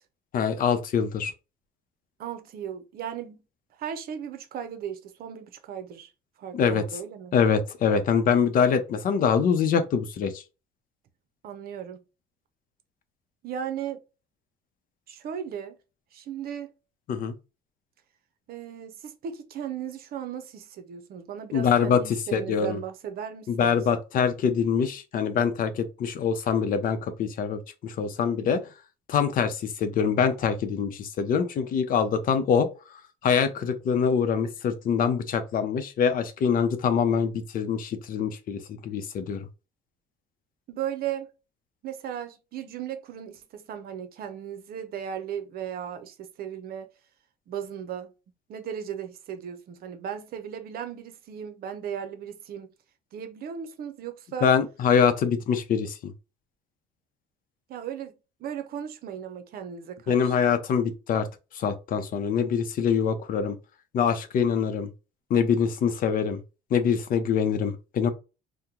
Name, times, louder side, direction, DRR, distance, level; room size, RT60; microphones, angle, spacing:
voice 1, 0.3-1.3 6.5-6.8 7.3-10.4 17.1-17.3 21.5-22.8 23.5-28.6 29.1-32.7 33.2-39.5 54.4-56.1 60.1-61.3 61.5-63.6 63.9-64.9 65.3-66.4 66.7-68.1, left 7 dB, 55° left, 0.7 m, -24 dB
voice 2, 2.2-3.4 3.8-6.1 6.4-7.4 11.4-12.0 13.4-14.0 15.1-15.8 16.1-16.7 18.5-23.8 40.7-41.3 41.8-46.9 47.5-48.1 48.5-52.7 53.1-54.5 57.7-58.1 58.4-60.4, right 9 dB, 60° right, 0.7 m, -36 dB
2.9 x 2.2 x 3.7 m
cardioid pair, 110°, 17 cm